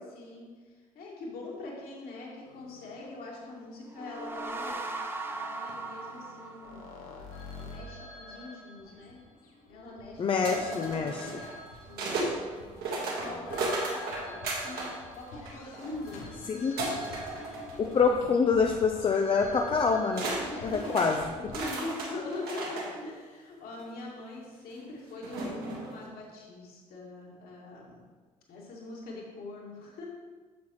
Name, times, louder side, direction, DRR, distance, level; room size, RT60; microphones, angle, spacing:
voice 1, 0.0-4.8 5.3-9.2 9.7-11.6 11.9-12.4 12.9-17.1 19.4-19.7 20.4-28.0 28.5-30.1, left 2 dB, 55° left, -3 dB, 2.0 m, -43 dB
sound 1, 2.4-3.1 4.4-4.5 5.7-21.7, left 2 dB, 70° left, 1.1 m, -47 dB
sound 2, 3.8-7.3, right 3 dB, 10° right, 0.7 m, -38 dB
voice 2, 10.2-11.3 16.5-16.7 17.8-20.3 20.6-21.2, left 5 dB, 30° left, 3 dB, 0.5 m, -26 dB
sound 3, 10.4-12.3 12.8-15.0 15.3-16.1 16.8-18.2 18.5-18.8 19.8-19.9 20.1-22.9 23.7-23.8 25.2-26.0, right 2 dB, 55° right, 1.6 m, -35 dB
8.5 x 6.9 x 3.1 m, 1.5 s
figure-of-eight pair, 50°, 19 cm